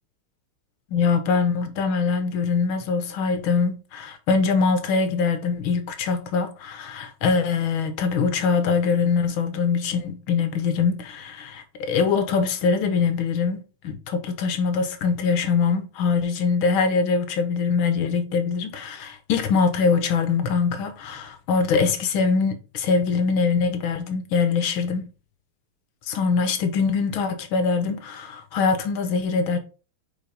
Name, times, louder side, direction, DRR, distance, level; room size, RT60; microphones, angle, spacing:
voice 1, 0.9-25.0 26.1-29.6, left 5 dB, 75° left, 1.7 m, -23 dB
5.2 x 5.0 x 5.2 m
omnidirectional pair, 2.4 m